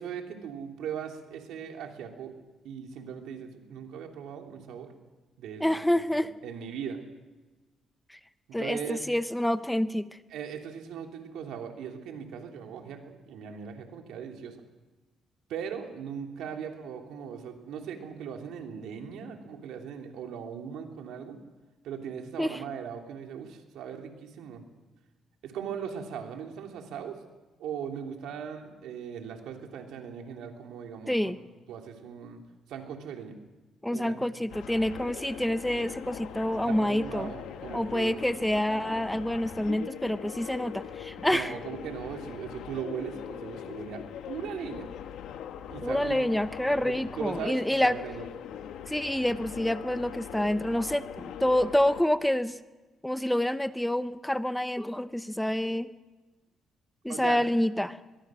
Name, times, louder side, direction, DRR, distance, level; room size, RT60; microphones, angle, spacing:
voice 1, 0.0-2.3 2.6-4.9 5.4-5.8 6.1-7.0 8.6-9.0 10.3-14.6 15.5-21.4 21.8-24.6 25.4-27.2 27.6-31.4 31.7-32.4 32.7-33.4 33.9-34.2 36.6-38.2 41.3-44.9 45.7-46.3 46.6-48.3 57.1-57.5, right 7 dB, 85° right, 3 dB, 3.1 m, -39 dB
voice 2, 5.6-6.3 8.1-8.2 8.5-10.1 22.4-22.6 31.1-31.4 33.8-37.3 37.7-41.5 45.8-48.0 48.9-52.6 53.0-55.9 57.0-58.0, left 1 dB, 5° left, 13 dB, 0.7 m, -27 dB
sound 1, 34.5-52.0, left 9 dB, 80° left, 1.3 m, -41 dB
22.5 x 21.5 x 6.3 m, 1.2 s
cardioid pair, 90°, 0 cm